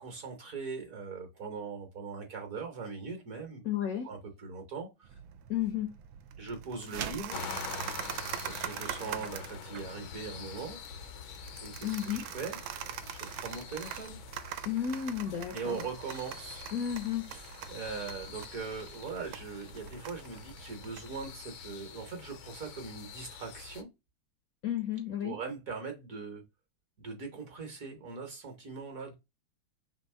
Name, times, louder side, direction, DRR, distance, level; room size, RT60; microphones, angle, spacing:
voice 1, 0.0-3.7 4.0-5.2 6.4-7.4 8.5-10.8 11.6-12.6 13.1-14.2 15.5-16.7 17.3-23.9 25.2-26.4 27.0-29.1, right 5 dB, 55° right, 1.2 m, -41 dB
voice 2, 3.6-4.1 5.5-5.9 11.8-12.2 14.6-15.8 16.7-17.3 24.6-25.4, left 10 dB, 70° left, 0.8 m, -32 dB
sound 1, 5.0-21.3, right 10 dB, 90° right, 1.4 m, -44 dB
sound 2, 6.8-7.4, right 7 dB, 70° right, 0.9 m, -38 dB
sound 3, 7.3-23.8, left 7 dB, 90° left, 1.5 m, -46 dB
3.5 x 2.9 x 4.3 m
omnidirectional pair, 2.2 m